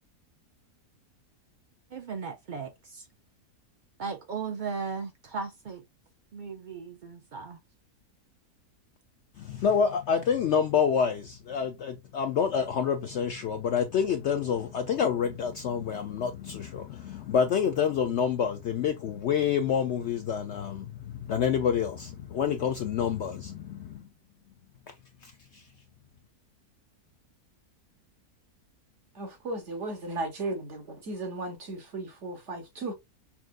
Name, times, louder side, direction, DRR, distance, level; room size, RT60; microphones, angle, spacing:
voice 1, 1.9-3.1 4.0-5.8 6.3-7.6, right 5 dB, 90° right, 0.4 m, -36 dB
voice 2, 9.4-24.0 25.2-25.6, left 7 dB, 70° left, 0.6 m, -28 dB
voice 3, 29.1-32.9, right 2 dB, 55° right, 1.3 m, -35 dB
5.8 x 2.5 x 2.3 m
omnidirectional pair, 1.6 m